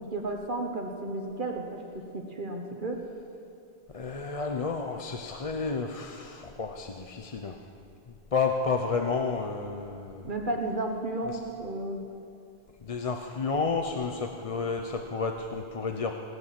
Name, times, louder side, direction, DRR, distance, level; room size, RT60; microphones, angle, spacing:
voice 1, 0.1-1.8 2.1-3.0 10.2-12.0, right 2 dB, 55° right, 3 dB, 1.3 m, -33 dB
voice 2, 3.9-7.6 8.1-10.3 11.2-11.4 12.8-16.1, left 4 dB, 40° left, 4 dB, 0.7 m, -31 dB
18.5 x 9.6 x 7.6 m, 2.5 s
omnidirectional pair, 1.0 m